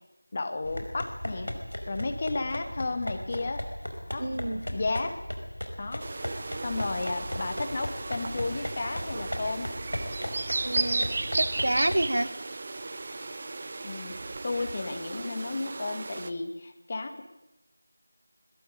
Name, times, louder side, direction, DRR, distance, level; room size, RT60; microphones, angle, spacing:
voice 1, 0.3-1.5 1.9-3.6 4.1-4.3 4.7-5.2 5.8-6.1 6.6-9.7 13.8-17.2, left 3 dB, 25° left, 6 dB, 2.1 m, -33 dB
sound 1, 0.6-12.1, left 1 dB, 75° left, 5.2 m, -37 dB
voice 2, 4.2-4.6 10.6-12.3, right 1 dB, 55° right, 13 dB, 1.5 m, -28 dB
sound 2, 6.0-16.3, right 3 dB, 30° right, 1.0 m, -35 dB
21.0 x 21.0 x 8.8 m, 0.95 s
figure-of-eight pair, 170°, 0 cm